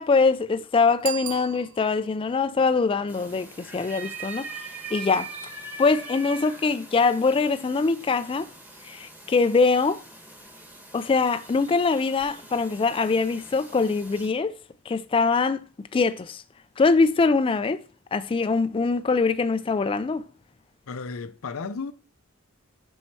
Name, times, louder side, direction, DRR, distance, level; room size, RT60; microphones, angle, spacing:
voice 1, 0.0-5.3 5.8-8.5 8.8-10.0 10.9-14.6 14.9-15.6 15.9-16.4 16.8-17.8 18.1-20.2, left 4 dB, 25° left, 0.3 m, -23 dB
Bicycle bell, 1.0-2.2, right 10 dB, 80° right, 0.5 m, -35 dB
sound 1, 3.1-14.3, right 3 dB, 10° right, 1.3 m, -42 dB
voice 2, 20.9-21.9, left 4 dB, 75° left, 0.6 m, -33 dB
7.4 x 5.5 x 4.6 m
head